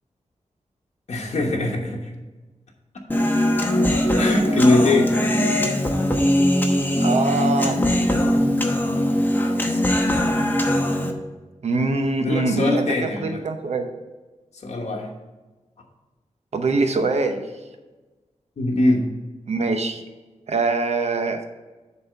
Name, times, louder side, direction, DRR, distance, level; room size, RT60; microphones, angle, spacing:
voice 1, 1.1-2.1 4.2-5.1 12.2-13.4 14.6-15.1 18.6-19.1, left 2 dB, 65° left, 0 dB, 1.2 m, -21 dB
Human voice, 3.1-11.1, left 1 dB, 15° left, 0.8 m, -20 dB
voice 2, 7.0-7.8 8.0-8.2 11.6-13.9 16.5-17.5 19.5-20.0 20.5-21.4, right 3 dB, 65° right, 6 dB, 0.7 m, -23 dB
7.0 x 4.2 x 6.7 m, 1.2 s
wide cardioid pair, 155°, 12 cm